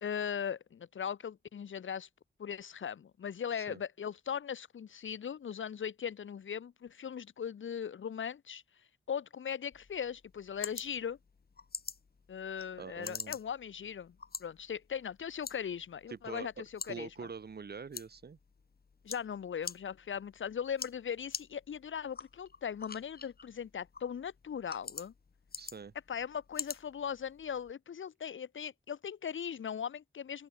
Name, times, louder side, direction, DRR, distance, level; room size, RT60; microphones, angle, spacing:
voice 1, 0.0-2.1 2.4-8.6 9.1-11.2 12.3-17.1 19.0-25.1 26.1-30.5, left 8 dB, 80° left, 0.8 m, -39 dB
sound 1, 9.7-27.7, left 5 dB, 50° left, 1.5 m, -47 dB
voice 2, 12.8-13.4 16.1-18.4 25.6-25.9, right 5 dB, 55° right, 1.1 m, -45 dB
open air
wide cardioid pair, 85°, 20 cm